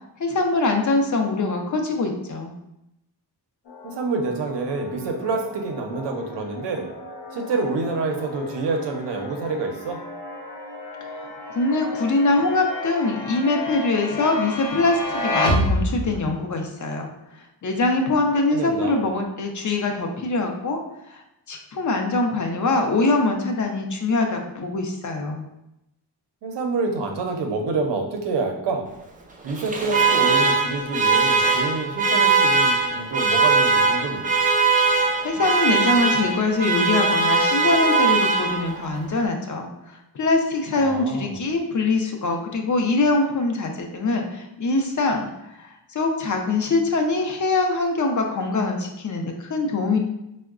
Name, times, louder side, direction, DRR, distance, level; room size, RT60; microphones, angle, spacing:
voice 1, 0.2-2.5 11.5-20.8 21.1-21.2 21.5-25.4 35.2-39.7 40.1-50.0, left 3 dB, 45° left, 3 dB, 0.5 m, -23 dB
sound 1, 3.7-16.3, left 1 dB, 80° left, 0.8 m, -31 dB
voice 2, 3.8-6.9 7.3-10.0 18.5-19.1 26.4-28.9 29.4-34.3 40.7-41.4, right 3 dB, 90° right, 3 dB, 0.6 m, -27 dB
Alarm, 29.5-38.9, right 4 dB, 20° right, 0.3 m, -20 dB
4.4 x 2.1 x 2.4 m, 0.87 s
wide cardioid pair, 120°, 41 cm